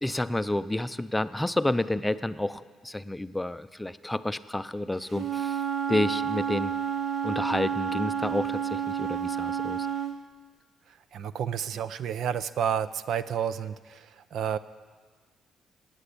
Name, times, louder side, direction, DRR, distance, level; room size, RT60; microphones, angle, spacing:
voice 1, 0.0-5.6 5.9-6.7 7.2-9.9, left 1 dB, 10° left, 12 dB, 0.5 m, -30 dB
Wind instrument woodwind instrument, 5.1-10.1, right 8 dB, 50° right, 1.0 m, -30 dB
voice 2, 11.1-14.0 14.3-14.6, right 8 dB, 70° right, 14 dB, 0.6 m, -30 dB
17.5 x 9.0 x 8.5 m, 1.5 s
cardioid pair, 90°, 0 cm